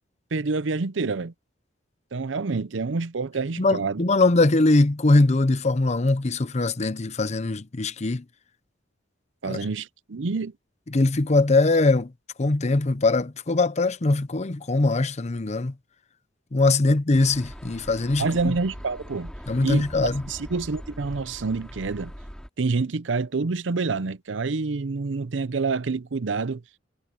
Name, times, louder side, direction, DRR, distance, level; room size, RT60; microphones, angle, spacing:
voice 1, 0.3-1.3 2.1-4.0 9.4-10.5 18.2-19.3 19.6-22.1 22.6-26.6, right 4 dB, 85° right, 0.7 m, -27 dB
voice 2, 3.6-8.2 9.4-9.6 10.9-12.1 12.4-15.7 16.5-18.5 19.5-20.2, left 2 dB, 35° left, 0.7 m, -21 dB
sound 1, 17.1-22.5, equal, 5° left, 3.3 m, -41 dB
head